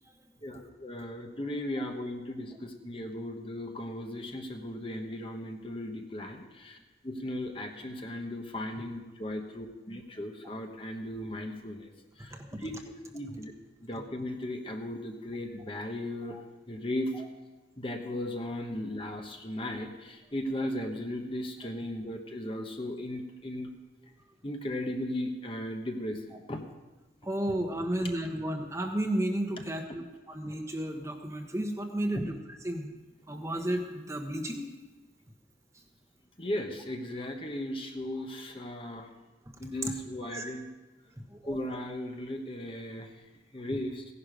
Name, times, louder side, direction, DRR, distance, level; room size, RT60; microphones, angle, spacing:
voice 1, 0.4-6.8 7.0-11.9 12.2-13.5 13.8-16.4 16.7-17.1 17.8-23.7 24.4-26.6 32.1-32.3 36.4-39.1 39.6-40.7 41.5-43.1 43.5-44.0, left 1 dB, 30° left, 4 dB, 1.2 m, -36 dB
voice 2, 27.2-32.2 32.6-32.9 33.3-34.6 40.3-40.5 41.3-41.6, right 1 dB, 15° right, 3 dB, 1.2 m, -33 dB
16.5 x 11.5 x 5.1 m, 1.2 s
head